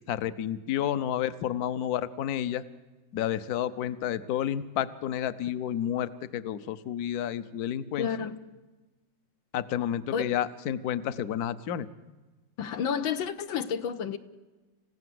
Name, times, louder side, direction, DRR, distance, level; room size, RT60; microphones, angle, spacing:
voice 1, 0.1-2.6 3.1-8.1 9.5-11.9, left 10 dB, 60° left, 14 dB, 1.2 m, -30 dB
voice 2, 8.0-8.4 10.1-10.4 12.6-14.2, left 7 dB, 85° left, 9 dB, 1.9 m, -30 dB
29.0 x 16.0 x 7.8 m, 1.2 s
omnidirectional pair, 2.1 m